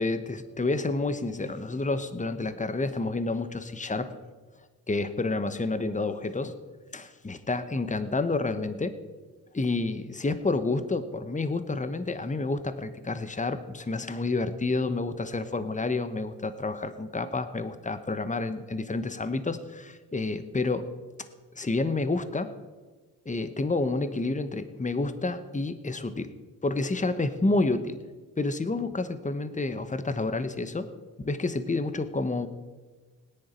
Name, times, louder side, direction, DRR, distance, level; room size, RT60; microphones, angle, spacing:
voice 1, 0.0-4.1 4.9-6.6 6.9-9.0 9.5-20.9 21.2-21.3 21.5-22.5 23.2-26.3 26.6-28.0 28.4-30.9 31.2-32.5, left 3 dB, 15° left, 11 dB, 1.2 m, -29 dB
18.0 x 10.0 x 4.5 m, 1.3 s
hypercardioid pair, 45°, 45 cm